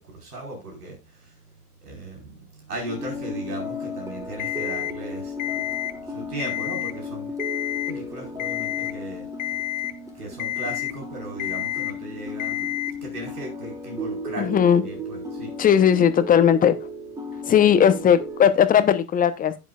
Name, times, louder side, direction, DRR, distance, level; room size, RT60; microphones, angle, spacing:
voice 1, 0.0-1.3 1.8-5.3 6.1-7.3 7.9-9.2 10.1-12.7 13.0-15.5, right 1 dB, 75° right, 5.0 m, -37 dB
sound 1, 2.9-18.5, left 2 dB, 5° right, 1.7 m, -35 dB
Alarm, 4.4-4.9 5.4-5.9 6.3-6.9 7.4-7.9 8.4-8.9 9.4-9.9 10.4-10.9 11.4-11.9 12.4-12.9, left 15 dB, 60° left, 1.2 m, -29 dB
voice 2, 14.4-14.8 15.6-16.9 17.4-19.6, left 8 dB, 20° left, 1.0 m, -18 dB
12.0 x 9.2 x 2.5 m
figure-of-eight pair, 95°, 46 cm